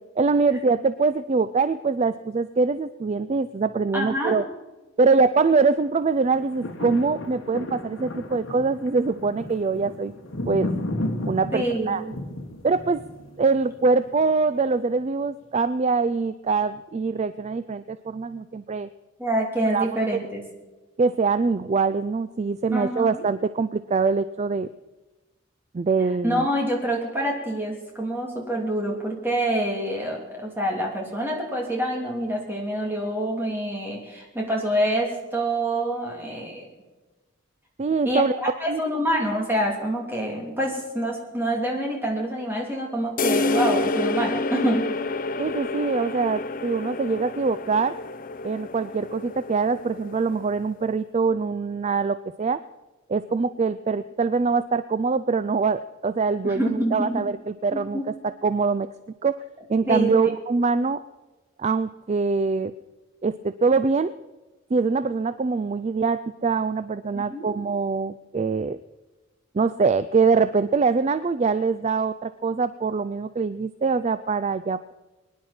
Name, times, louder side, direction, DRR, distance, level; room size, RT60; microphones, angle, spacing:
voice 1, 0.2-4.5 5.0-10.1 10.5-10.7 11.3-12.0 12.6-13.0 13.4-18.9 19.7-20.2 21.0-24.7 25.7-26.5 37.8-38.3 38.7-38.8 45.4-48.0 48.4-52.6 53.1-58.0 58.4-58.9 59.2-59.4 59.7-61.0 61.6-62.7 63.2-64.1 64.7-68.8 69.5-74.9, right 4 dB, 30° right, 13 dB, 0.3 m, -23 dB
voice 2, 3.9-4.3 11.5-12.1 19.2-20.4 22.7-23.1 26.2-36.6 38.0-44.8 56.4-57.1 57.7-58.0 59.9-60.3 67.1-67.5, right 1 dB, 10° right, -1 dB, 3.0 m, -26 dB
sound 1, 6.2-14.5 15.0-15.1, left 1 dB, 70° left, 1.5 m, -34 dB
sound 2, 43.2-50.7, left 2 dB, 40° left, 0.6 m, -28 dB
23.0 x 10.5 x 4.3 m, 1.1 s
head